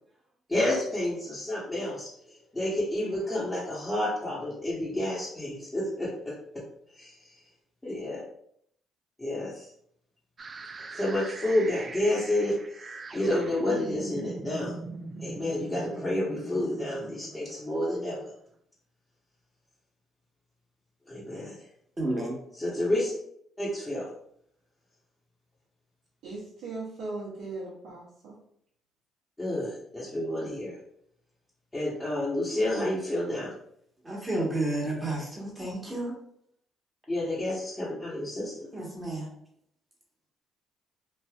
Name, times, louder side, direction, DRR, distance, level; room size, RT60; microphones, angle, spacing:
voice 1, 0.5-6.3 7.0-7.1 7.8-8.2 9.2-9.7 10.9-14.7 15.2-18.2 21.1-21.5 22.6-23.1 23.6-24.1 29.4-30.7 31.7-33.5 37.1-38.7, left 1 dB, 20° left, -9 dB, 1.1 m, -30 dB
sound 1, 10.4-18.3, right 3 dB, 40° right, 0.3 m, -41 dB
voice 2, 22.0-22.4 34.0-36.1 38.7-39.3, right 2 dB, 25° right, -3 dB, 1.3 m, -31 dB
voice 3, 26.2-28.4, right 3 dB, 75° right, -7 dB, 1.0 m, -38 dB
3.2 x 2.5 x 2.4 m, 0.68 s
supercardioid pair, 65°, 0 cm